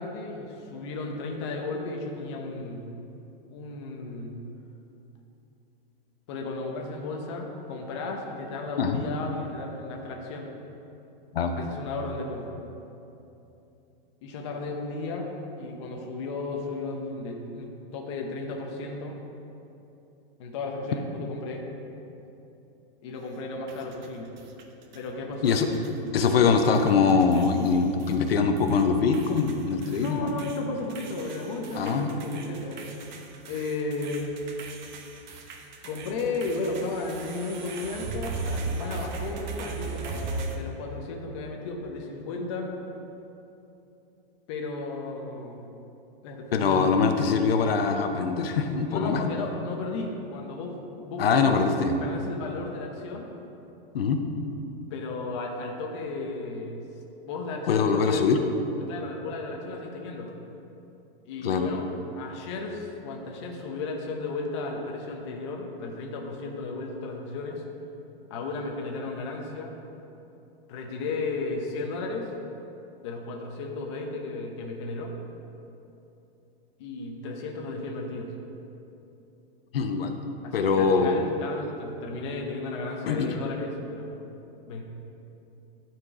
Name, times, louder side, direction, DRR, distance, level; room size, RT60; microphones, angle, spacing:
voice 1, 0.0-2.9 3.5-4.3 6.3-10.5 11.5-12.6 14.2-15.3 15.6-19.1 20.4-21.6 23.0-24.3 24.9-25.6 29.9-32.9 33.5-34.3 35.8-42.7 44.5-45.6 46.2-47.0 48.9-51.7 52.0-53.3 54.9-56.8 57.2-58.4 58.9-60.3 61.3-61.9 62.1-67.6 68.3-69.7 70.7-72.3 73.0-75.1 76.8-78.3 80.4-84.1 84.7-84.8, left 3 dB, 30° left, 1 dB, 0.8 m, -34 dB
voice 2, 11.3-11.6 25.4-25.7 26.1-30.4 31.8-32.1 46.5-49.2 51.2-51.9 53.9-54.2 57.7-58.4 61.4-61.7 79.7-80.1 80.5-81.2 83.1-83.3, left 5 dB, 75° left, 6 dB, 0.8 m, -23 dB
sound 1, 23.7-25.1 25.4-26.3 26.6-28.8 29.1-40.6, right 4 dB, 50° right, 0.9 m, -38 dB
11.5 x 4.6 x 4.8 m, 2.9 s
supercardioid pair, 175°, 29 cm